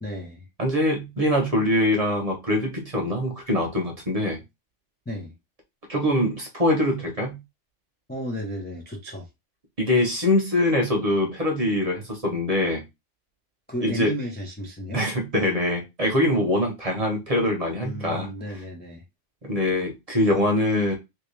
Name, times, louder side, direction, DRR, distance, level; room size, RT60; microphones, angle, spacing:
voice 1, 0.0-0.5 5.1-5.3 8.1-9.3 13.7-15.0 17.8-19.0, equal, 10° left, 0.6 m, -33 dB
voice 2, 0.6-4.4 5.9-7.4 9.8-12.8 13.8-14.1 14.9-18.3 19.4-20.9, left 1 dB, 35° right, 0.9 m, -23 dB
3.1 x 2.8 x 3.2 m
omnidirectional pair, 1.2 m